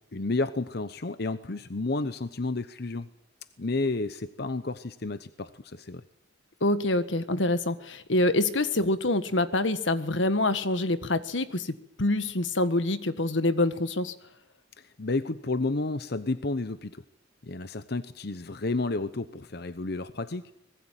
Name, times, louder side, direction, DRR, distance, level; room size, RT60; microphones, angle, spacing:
voice 1, 0.1-3.1 3.6-6.0 14.8-17.0 17.4-20.5, left 3 dB, 60° left, 13 dB, 0.9 m, -31 dB
voice 2, 6.6-14.1, left 2 dB, 85° left, 12 dB, 1.6 m, -26 dB
25.0 x 20.5 x 9.1 m, 0.78 s
head